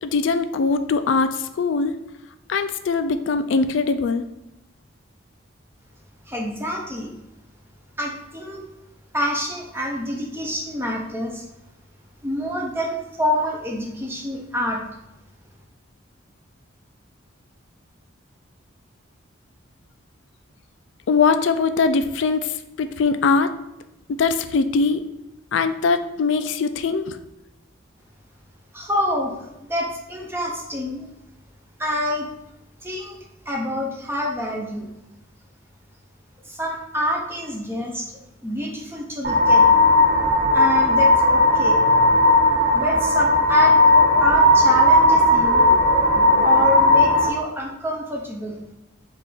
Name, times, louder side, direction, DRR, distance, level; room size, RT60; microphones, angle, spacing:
voice 1, 0.0-2.0 2.5-4.2 21.1-23.5 24.1-25.0 25.5-27.2, left 4 dB, 65° left, 10 dB, 0.3 m, -21 dB
voice 2, 6.3-7.1 8.0-8.6 9.1-11.5 12.2-14.8 28.7-29.4 29.7-31.1 31.8-32.3 32.8-33.2 33.5-34.9 36.4-39.7 40.5-41.8 42.7-43.8 44.2-45.7 46.4-48.6, left 1 dB, 10° right, -1 dB, 0.5 m, -27 dB
sound 1, 39.2-47.3, left 1 dB, 50° right, 0.6 m, -16 dB
5.4 x 2.5 x 3.7 m, 0.93 s
head